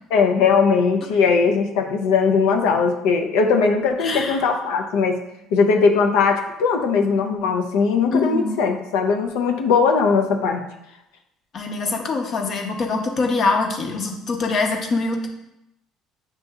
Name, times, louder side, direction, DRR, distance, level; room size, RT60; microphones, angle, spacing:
voice 1, 0.1-5.2 5.5-10.6, left 5 dB, 80° left, 3 dB, 0.5 m, -19 dB
voice 2, 4.0-4.4 8.1-8.6 11.5-15.3, left 3 dB, 45° left, 3 dB, 0.7 m, -23 dB
6.7 x 2.7 x 2.3 m, 0.87 s
supercardioid pair, 85°, 0 cm